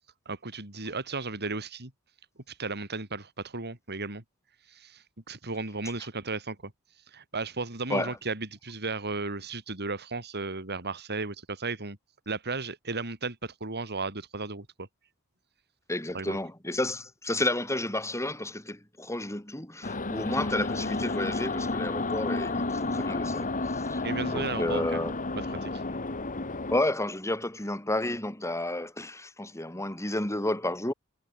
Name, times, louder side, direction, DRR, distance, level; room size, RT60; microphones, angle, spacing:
voice 1, 0.3-1.9 2.5-4.2 4.7-6.7 7.1-12.0 12.3-14.9 16.1-16.4 24.0-25.0 25.3-25.8, right 3 dB, 50° right, 4.4 m, -35 dB
voice 2, 15.9-23.5 23.8-24.0 24.3-25.2 26.7-30.9, left 1 dB, 15° left, 3.5 m, -31 dB
sound 1, 19.8-26.8, left 2 dB, 35° left, 2.2 m, -31 dB
head